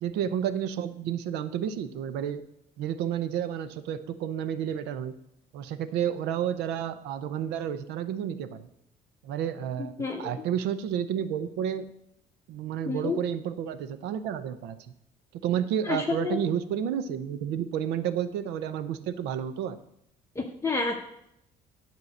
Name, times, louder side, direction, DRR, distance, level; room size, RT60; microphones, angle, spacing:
voice 1, 0.0-2.4 2.8-5.1 5.5-8.7 9.2-11.9 12.5-14.8 15.4-19.8, right 9 dB, 90° right, 13 dB, 0.7 m, -31 dB
voice 2, 10.0-10.3 12.9-13.2 15.9-16.4 20.4-20.9, left 4 dB, 15° left, -1 dB, 1.0 m, -29 dB
9.7 x 4.6 x 7.8 m, 0.77 s
cardioid pair, 110°, 17 cm